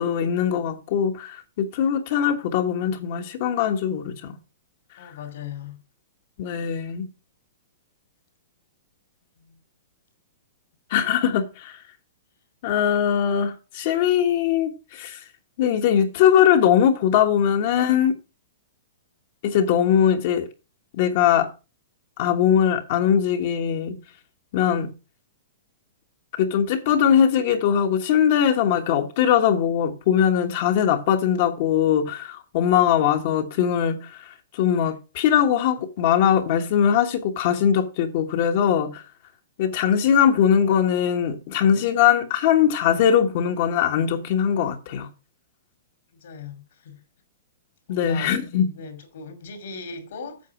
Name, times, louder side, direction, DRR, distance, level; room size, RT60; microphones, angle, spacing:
voice 1, 0.0-4.3 6.4-7.1 10.9-11.8 12.6-15.2 15.6-18.1 19.4-20.5 21.0-21.5 22.2-24.0 24.5-24.9 26.4-39.0 39.6-45.1 47.9-48.7, left 9 dB, 45° left, 1.3 m, -21 dB
voice 2, 5.0-5.8 46.2-47.0 47.9-48.4 48.7-50.4, left 5 dB, 65° left, 2.8 m, -38 dB
8.4 x 6.1 x 6.0 m
hypercardioid pair, 165°, 0 cm